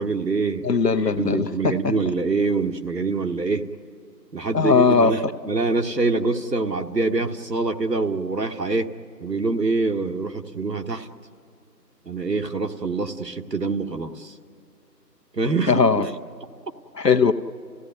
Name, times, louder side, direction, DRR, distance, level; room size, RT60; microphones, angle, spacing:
voice 1, 0.0-0.7 1.2-3.7 4.3-8.9 9.2-11.1 12.0-14.3 15.3-16.1, right 3 dB, 75° right, 6 dB, 1.5 m, -25 dB
voice 2, 0.6-1.9 4.5-5.3 15.7-16.0 16.9-17.3, left 5 dB, 70° left, 10 dB, 1.2 m, -19 dB
29.0 x 16.5 x 9.3 m, 2.3 s
figure-of-eight pair, 170°, 50 cm